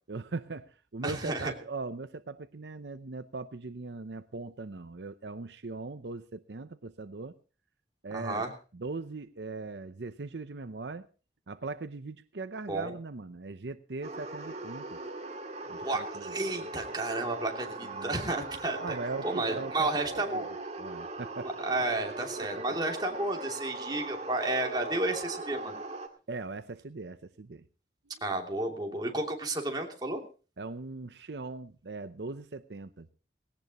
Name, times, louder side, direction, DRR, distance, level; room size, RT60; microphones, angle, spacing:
voice 1, 0.1-7.3 8.0-8.4 8.7-11.1 11.5-15.0 15.7-16.4 17.9-18.3 18.8-20.5 20.8-21.5 22.4-22.6 26.3-27.6 30.6-33.1, right 3 dB, 75° right, 11 dB, 0.7 m, -40 dB
voice 2, 1.0-1.5 8.1-8.5 12.7-12.9 15.8-19.0 19.2-20.5 21.6-25.7 28.2-30.2, right 2 dB, 25° right, 1 dB, 2.9 m, -32 dB
sound 1, 14.0-26.1, right 2 dB, 40° right, 2.0 m, -40 dB
19.0 x 17.5 x 3.0 m, 0.35 s
head